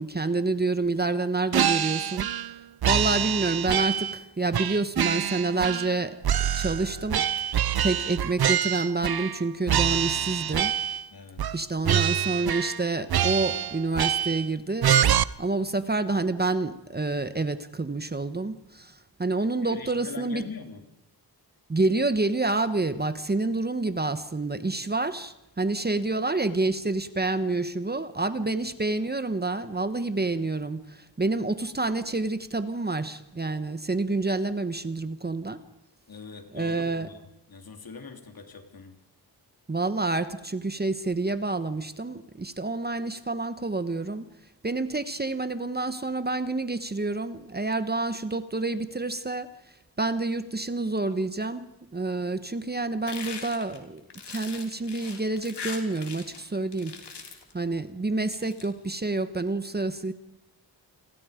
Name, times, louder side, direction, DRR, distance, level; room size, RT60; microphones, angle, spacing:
voice 1, 0.0-2.5 2.8-6.2 6.5-7.3 7.8-10.7 11.5-20.5 21.7-35.6 36.5-37.1 39.7-44.3 44.6-49.5 50.0-54.0 54.3-57.0 57.5-60.1, right 3 dB, 25° right, 11 dB, 1.1 m, -28 dB
sound 1, 1.5-2.5 2.8-4.2 4.5-6.0 6.2-9.4 9.7-11.0 11.4-11.6 11.8-12.8 13.1-14.5 14.8-15.2, right 10 dB, 65° right, 0.7 m, -25 dB
voice 2, 11.1-11.6 19.6-20.8 28.4-28.5 36.1-37.2 37.5-39.0, left 4 dB, 60° left, 5 dB, 3.1 m, -42 dB
sound 2, 53.1-56.4 56.7-57.5 58.2-58.6, left 5 dB, 90° left, 3.4 m, -40 dB
30.0 x 22.5 x 5.1 m, 0.89 s
wide cardioid pair, 120°, 40 cm